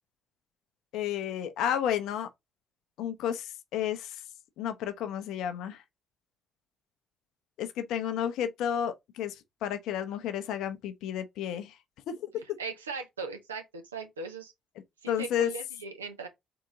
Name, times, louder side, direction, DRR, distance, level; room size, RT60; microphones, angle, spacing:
voice 1, 0.9-2.3 3.0-4.2 4.6-5.8 7.6-11.8 12.1-12.4 15.1-15.5, left 9 dB, 65° left, 0.7 m, -32 dB
voice 2, 12.6-14.5 15.0-16.3, right 4 dB, 85° right, 0.7 m, -39 dB
3.9 x 3.7 x 3.6 m
figure-of-eight pair, 40°, 0 cm